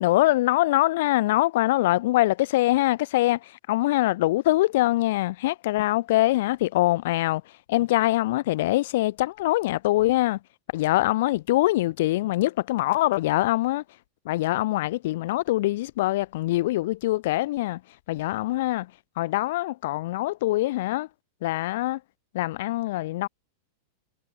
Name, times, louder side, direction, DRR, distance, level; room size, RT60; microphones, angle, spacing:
voice 1, 0.0-3.4 3.7-7.4 7.7-10.4 10.7-13.8 14.3-17.8 18.1-18.9 19.2-21.1 21.4-22.0 22.3-23.3, left 17 dB, 65° left, 0.5 m, -23 dB
hypercardioid pair, 100°, 0 cm